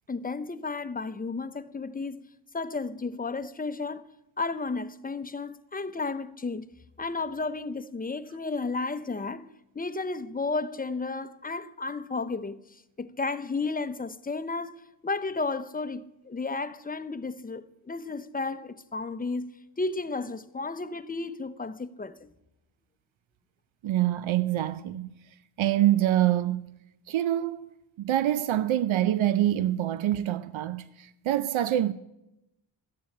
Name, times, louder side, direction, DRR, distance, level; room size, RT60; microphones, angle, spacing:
voice 1, 0.1-2.2 2.5-4.1 4.4-6.7 7.0-9.5 9.7-14.8 15.0-22.3, left 3 dB, 20° left, 0.7 m, -33 dB
voice 2, 23.8-25.1 25.6-26.8 27.1-27.7 28.0-31.9, right 13 dB, 85° right, 0.7 m, -25 dB
14.0 x 10.5 x 8.5 m
wide cardioid pair, 115°, 46 cm